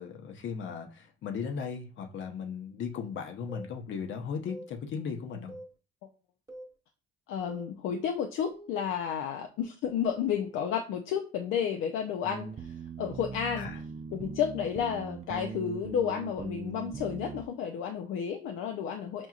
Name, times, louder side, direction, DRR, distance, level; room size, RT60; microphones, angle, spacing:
voice 1, 0.0-5.5 13.6-13.8, left 6 dB, 75° left, 0.9 m, -37 dB
sound 1, 3.5-3.7 4.5-4.7 5.5-5.7 6.5-6.7 7.5-7.7 8.5-8.8, right 1 dB, 15° right, 1.1 m, -45 dB
voice 2, 7.3-13.7 14.1-19.3, left 8 dB, 90° left, 0.5 m, -32 dB
sound 2, 12.2-17.5, right 6 dB, 35° right, 0.4 m, -41 dB
6.0 x 2.7 x 2.4 m
cardioid pair, 90°, 20 cm